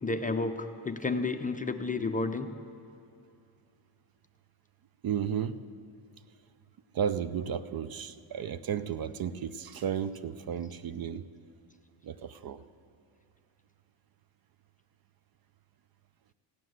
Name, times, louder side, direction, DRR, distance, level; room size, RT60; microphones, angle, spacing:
voice 1, 0.0-2.5, left 3 dB, 15° left, 5 dB, 0.5 m, -31 dB
voice 2, 5.0-5.6 6.9-11.3 12.0-12.6, right 8 dB, 50° right, 13 dB, 0.6 m, -33 dB
16.0 x 9.6 x 7.8 m, 2.6 s
cardioid pair, 130°, 49 cm